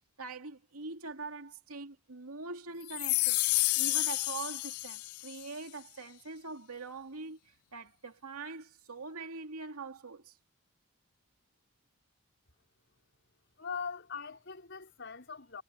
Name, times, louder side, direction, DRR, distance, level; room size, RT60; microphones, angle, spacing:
voice 1, 0.2-3.4 3.7-7.4 7.7-10.4, right 3 dB, 90° right, 2.6 m, -43 dB
sound 1, 2.9-5.4, left 22 dB, 85° left, 0.3 m, -30 dB
voice 2, 13.6-15.6, left 5 dB, 55° left, 5.7 m, -41 dB
head